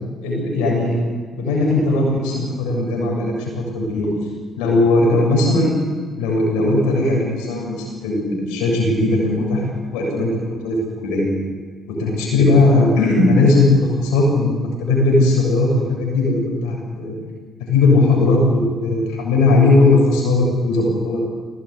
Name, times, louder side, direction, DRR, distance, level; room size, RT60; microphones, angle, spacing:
voice 1, 0.2-1.0 1.3-4.1 4.6-5.7 6.2-9.6 9.9-10.3 10.6-11.3 11.9-17.1 17.7-21.2, left 2 dB, 85° left, -2 dB, 7.5 m, -18 dB
20.5 x 18.0 x 9.9 m, 1.5 s
hypercardioid pair, 55°, 0 cm